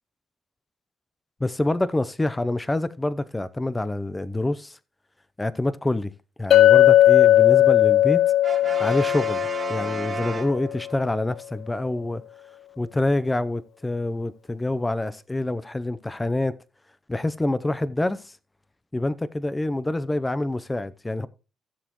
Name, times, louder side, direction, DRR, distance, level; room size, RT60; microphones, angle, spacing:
voice 1, 1.4-4.8 5.4-6.1 6.4-8.2 8.8-12.2 12.8-16.6 17.1-18.3 18.9-21.3, left 2 dB, 15° left, 0.7 m, -26 dB
Chink clink, 6.5-10.7, left 13 dB, 65° left, 0.4 m, -17 dB
Brass instrument, 8.4-11.1, right 4 dB, 35° right, 1.1 m, -34 dB
15.5 x 6.9 x 3.1 m
cardioid pair, 90°, 0 cm